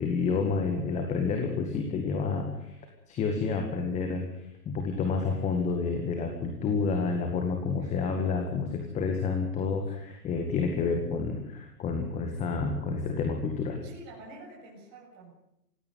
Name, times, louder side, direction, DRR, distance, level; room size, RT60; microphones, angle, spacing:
voice 1, 0.0-2.8 3.1-4.3 4.7-13.8, left 4 dB, 15° left, 4 dB, 2.0 m, -29 dB
voice 2, 13.8-15.3, right 2 dB, 30° right, -3 dB, 7.4 m, -48 dB
19.5 x 16.5 x 9.5 m, 0.80 s
hypercardioid pair, 150°, 50 cm